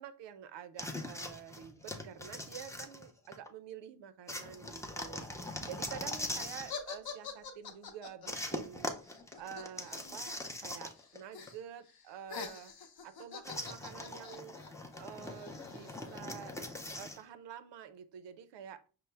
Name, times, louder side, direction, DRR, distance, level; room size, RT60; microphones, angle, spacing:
voice 1, 0.0-12.7 13.0-14.6 15.0-16.6 16.9-18.8, right 9 dB, 85° right, 12 dB, 0.5 m, -48 dB
sound 1, 0.8-3.5 4.3-6.8 8.3-11.2 11.5-11.6 13.4-17.2, left 1 dB, 10° left, 0.4 m, -41 dB
sound 2, 6.7-10.7 11.0-11.6 11.9-16.5, left 5 dB, 60° left, 0.7 m, -46 dB
5.4 x 2.0 x 3.2 m, 0.36 s
cardioid pair, 105°, 42 cm